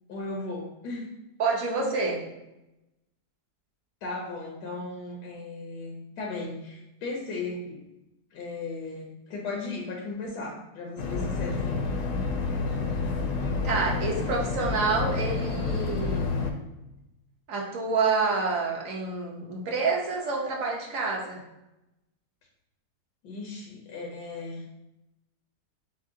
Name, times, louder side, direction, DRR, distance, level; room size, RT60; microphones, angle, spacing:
voice 1, 0.1-1.1 4.0-7.8 8.3-11.9 23.2-24.6, left 3 dB, 85° left, -2 dB, 1.4 m, -36 dB
voice 2, 1.4-2.2 13.6-16.4 17.5-21.4, right 4 dB, 60° right, -1 dB, 1.2 m, -28 dB
sound 1, 11.0-16.5, left 4 dB, 65° left, 0.9 m, -29 dB
6.3 x 2.1 x 3.7 m, 0.93 s
omnidirectional pair, 1.7 m